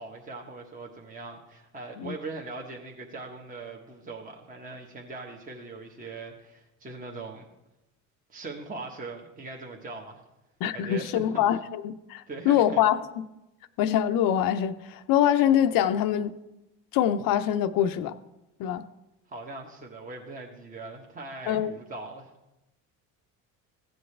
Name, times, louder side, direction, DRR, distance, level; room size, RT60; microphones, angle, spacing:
voice 1, 0.0-7.5 8.3-10.2 10.7-11.4 12.3-12.8 19.3-22.3, right 3 dB, 20° right, 0 dB, 1.2 m, -40 dB
voice 2, 10.6-13.2 13.8-16.3 16.9-18.1 18.6-18.8 21.5-21.7, left 10 dB, 60° left, 11 dB, 0.6 m, -24 dB
15.0 x 7.9 x 3.3 m, 0.94 s
supercardioid pair, 100°, 37 cm